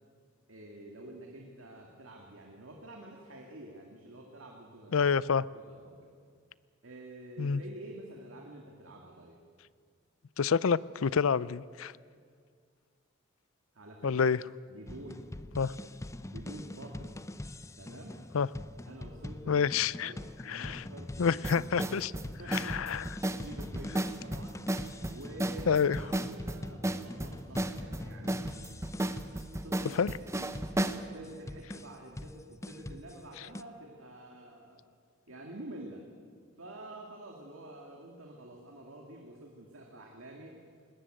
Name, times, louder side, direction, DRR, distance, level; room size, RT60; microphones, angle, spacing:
voice 1, 0.5-5.1 5.5-6.1 6.8-9.4 13.7-14.3 14.7-15.2 16.3-17.1 17.8-18.2 18.9-19.6 20.0-21.4 22.4-24.6 25.1-28.4 29.5-30.0 30.3-30.5 30.9-34.8 35.3-36.0 36.6-40.6, right 1 dB, 70° right, 0 dB, 2.3 m, -48 dB
voice 2, 4.9-5.5 7.4-7.6 10.4-11.9 14.0-14.4 15.6-15.7 18.3-18.5 19.5-20.1 20.5-20.8 21.2-22.1 22.5-23.1 25.7-26.0 30.0-30.1, left 6 dB, 80° left, 20 dB, 0.5 m, -28 dB
sound 1, 14.9-33.6, left 1 dB, 15° left, 0.5 m, -44 dB
sound 2, 21.4-31.0, right 1 dB, 15° right, 0.8 m, -34 dB
20.5 x 19.0 x 9.0 m, 2.1 s
head